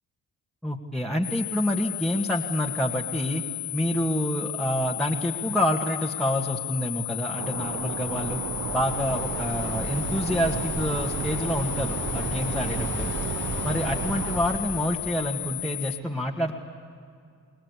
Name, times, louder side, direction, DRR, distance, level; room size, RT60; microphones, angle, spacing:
voice 1, 0.6-3.4 3.7-8.4 8.7-13.1 13.6-16.5, equal, ahead, -2 dB, 2.2 m, -27 dB
sound 1, 1.2-16.0, left 18 dB, 65° left, 0.7 m, -34 dB
Stream, 7.4-14.4, right 11 dB, 45° right, 0.6 m, -34 dB
Waves surf, 7.5-15.2, right 2 dB, 30° right, 2.7 m, -35 dB
28.0 x 20.5 x 8.6 m, 2.3 s
hypercardioid pair, 45°, 41 cm